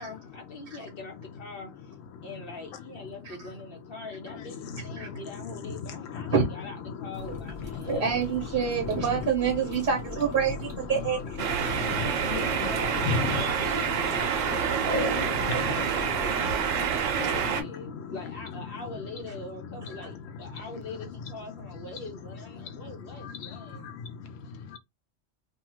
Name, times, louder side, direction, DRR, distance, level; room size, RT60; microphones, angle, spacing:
voice 1, 0.0-1.9 2.2-9.1 9.6-9.7 12.2-16.3 17.0-23.9, left 2 dB, 50° left, 1.1 m, -43 dB
voice 2, 5.9-6.3 7.1-7.3 7.8-8.0 9.0-9.1 11.4-12.3 12.6-13.4 14.0-14.5 15.2-17.2 17.9-18.1 22.6-22.8 23.2-24.8, left 5 dB, 90° left, 0.9 m, -35 dB
sound 1, 7.1-17.1, equal, 25° right, 0.6 m, -39 dB
voice 3, 8.0-11.4 20.0-20.1, right 6 dB, 50° right, 0.9 m, -27 dB
sound 2, 11.4-17.6, right 8 dB, 85° right, 0.9 m, -28 dB
2.7 x 2.3 x 2.9 m
omnidirectional pair, 1.3 m